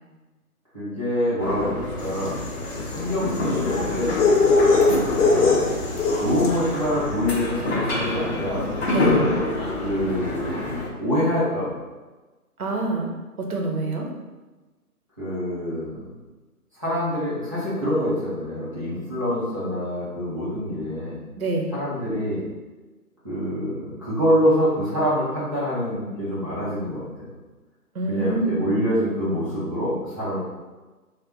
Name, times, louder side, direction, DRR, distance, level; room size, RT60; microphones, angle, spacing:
voice 1, 0.7-2.4 2.8-4.2 5.3-5.7 6.2-8.8 9.8-11.8 15.2-16.1 16.8-21.2 21.7-22.4 23.2-27.3 28.1-30.4, equal, 20° right, -12 dB, 0.7 m, -25 dB
sound 1, 1.4-10.9, left 2 dB, 45° left, 0.7 m, -27 dB
sound 2, 2.1-6.7, left 3 dB, 80° left, 0.7 m, -21 dB
voice 2, 8.9-9.3 12.6-13.1 13.4-14.1 21.4-21.7 27.9-28.7, right 2 dB, 65° right, 1 dB, 0.8 m, -26 dB
3.4 x 2.2 x 2.7 m, 1.2 s
figure-of-eight pair, 155°, 46 cm